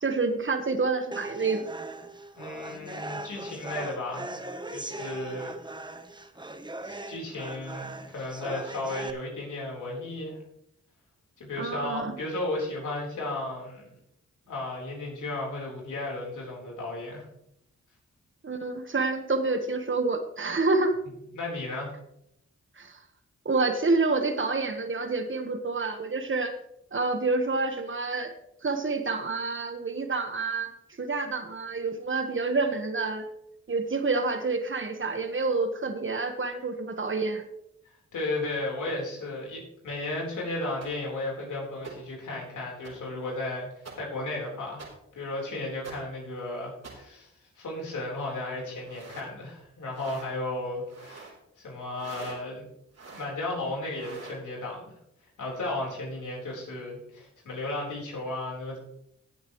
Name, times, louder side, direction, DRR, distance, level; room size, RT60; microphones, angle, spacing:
voice 1, 0.0-1.7 11.6-12.2 18.4-21.0 22.8-23.0 23.4-26.6 26.9-28.3 28.6-30.7 31.0-33.3 33.7-37.4, right 3 dB, 40° right, 7 dB, 1.5 m, -28 dB
sound 1, 1.1-9.1, right 2 dB, 15° right, 1.1 m, -39 dB
voice 2, 2.4-4.3 4.7-5.5 6.8-10.4 11.4-13.8 14.5-17.2 21.3-21.9 38.1-44.9 45.1-47.3 47.6-52.6 53.1-55.0 55.4-58.8, left 2 dB, 85° left, -2 dB, 4.2 m, -34 dB
sound 2, 40.8-40.9 41.8-41.9 42.8-42.9 43.8-43.9 44.8-44.9 45.8-45.9 46.8-46.9 48.8-49.3 49.9-50.3 50.8-51.3 51.9-52.4 52.9-53.3 53.9-54.4, right 4 dB, 55° right, 3.8 m, -44 dB
17.5 x 8.0 x 3.2 m, 0.79 s
cardioid pair, 60°, 30 cm